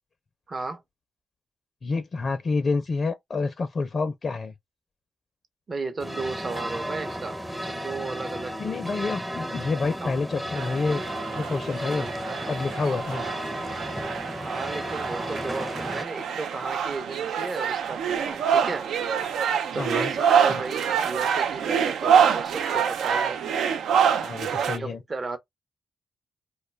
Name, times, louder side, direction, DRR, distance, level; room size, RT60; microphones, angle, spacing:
voice 1, 0.5-0.8 5.7-8.6 10.0-10.2 14.4-18.9 19.7-23.4 24.5-25.4, right 3 dB, 45° right, 0.7 m, -34 dB
voice 2, 1.8-4.5 8.6-11.0 11.3-12.1 12.5-13.3 19.7-20.1 20.5-20.6 24.2-25.0, left 4 dB, 55° left, 0.5 m, -28 dB
sound 1, 6.0-16.0, equal, 10° right, 0.5 m, -34 dB
sound 2, 10.5-24.8, right 7 dB, 80° right, 0.3 m, -26 dB
2.2 x 2.1 x 3.2 m
supercardioid pair, 50°, 0 cm